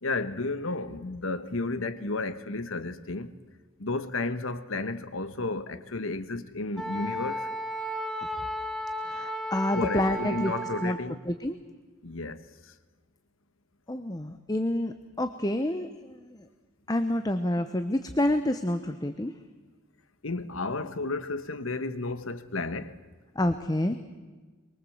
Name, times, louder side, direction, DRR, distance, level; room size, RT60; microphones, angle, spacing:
voice 1, 0.0-3.3 3.8-7.5 9.7-11.2 12.0-12.7 20.2-23.0, left 3 dB, 85° left, 1.3 m, -32 dB
Wind instrument woodwind instrument, 6.8-11.0, equal, ahead, 1.7 m, -34 dB
voice 2, 9.0-10.5 10.8-11.0 11.3-11.6 13.9-16.5 16.9-19.4 23.3-24.0, left 1 dB, 20° left, 0.9 m, -28 dB
23.5 x 23.0 x 7.9 m
head